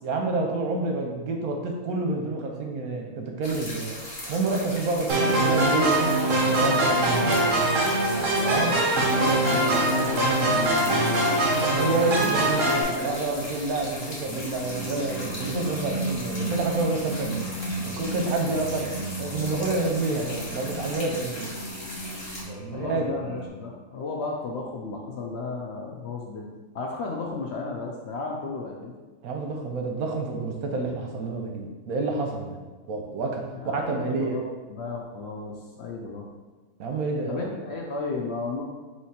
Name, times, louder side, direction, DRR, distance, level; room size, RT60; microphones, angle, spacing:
voice 1, 0.0-4.0 4.3-7.6 8.4-8.8 11.6-17.5 17.8-18.9 19.2-21.5 22.5-23.1 29.2-32.6 32.9-34.4 36.8-37.5, right 3 dB, 85° right, 2 dB, 1.2 m, -28 dB
sound 1, 3.4-22.4, left 1 dB, 40° left, 1.1 m, -38 dB
sound 2, 5.1-12.8, right 1 dB, 65° right, 1.1 m, -23 dB
voice 2, 8.5-11.0 22.7-26.5 26.7-28.9 33.5-34.4 34.7-36.3 37.3-38.6, left 3 dB, 60° left, 0 dB, 0.7 m, -34 dB
sound 3, 9.8-23.5, equal, 85° left, 1.4 m, -36 dB
3.9 x 3.0 x 4.2 m, 1.3 s
omnidirectional pair, 1.5 m